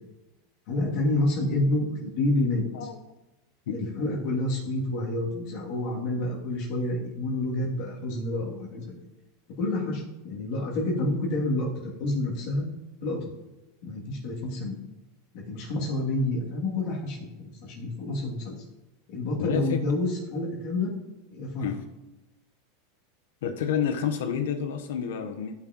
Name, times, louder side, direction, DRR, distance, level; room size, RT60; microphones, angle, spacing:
voice 1, 0.7-2.6 3.7-8.9 9.6-12.6 13.0-13.3 13.8-14.8 15.3-18.6 19.1-20.9 21.3-21.7, left 2 dB, 55° left, -4 dB, 2.8 m, -28 dB
voice 2, 19.4-19.8 21.6-21.8 23.4-25.5, left 8 dB, 80° left, 7 dB, 1.0 m, -29 dB
15.0 x 6.0 x 3.1 m, 0.99 s
supercardioid pair, 130°, 0 cm